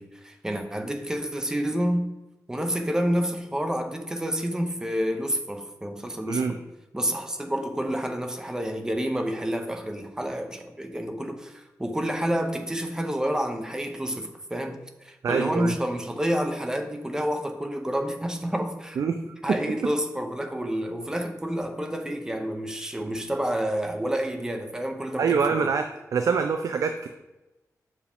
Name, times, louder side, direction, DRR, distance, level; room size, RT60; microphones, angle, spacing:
voice 1, 0.0-2.1 2.5-6.6 6.9-25.7, equal, 10° right, 4 dB, 0.6 m, -29 dB
voice 2, 15.2-15.7 19.0-19.2 19.5-19.6 25.2-25.9 26.1-27.1, right 5 dB, 60° right, 7 dB, 0.3 m, -24 dB
6.5 x 4.9 x 3.4 m, 1.0 s
wide cardioid pair, 175°, 6 cm